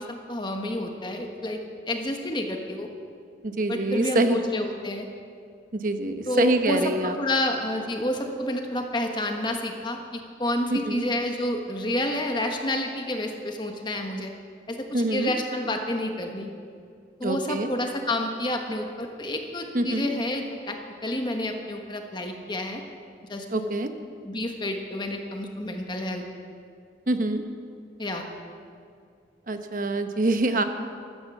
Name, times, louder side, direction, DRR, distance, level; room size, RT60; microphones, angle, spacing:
voice 1, 0.0-1.6 1.9-2.9 3.7-5.1 6.3-10.0 10.4-14.3 14.7-16.5 17.2-22.8 23.3-23.7 24.2-26.2 28.0-28.3, left 1 dB, 25° left, 3 dB, 1.3 m, -29 dB
voice 2, 3.4-4.4 5.7-7.2 10.7-11.0 14.9-15.3 17.2-17.7 19.7-20.1 23.5-23.9 27.1-27.4 29.5-30.6, right 2 dB, 45° right, 7 dB, 1.0 m, -25 dB
14.0 x 13.0 x 7.1 m, 2.3 s
head